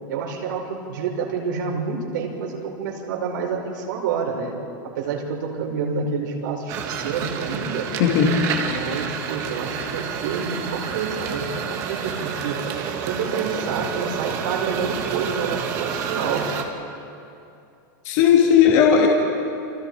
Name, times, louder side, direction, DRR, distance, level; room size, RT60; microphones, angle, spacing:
voice 1, 0.1-4.5 4.9-6.7 7.0-7.9 8.5-12.6 13.0-16.5, right 5 dB, 70° right, -1 dB, 5.6 m, -28 dB
sound 1, 6.7-16.6, right 7 dB, 30° right, 1.7 m, -29 dB
voice 2, 8.0-8.3 18.1-19.1, left 8 dB, 40° left, -1 dB, 2.6 m, -15 dB
30.0 x 26.5 x 5.0 m, 2.6 s
supercardioid pair, 180°, 11 cm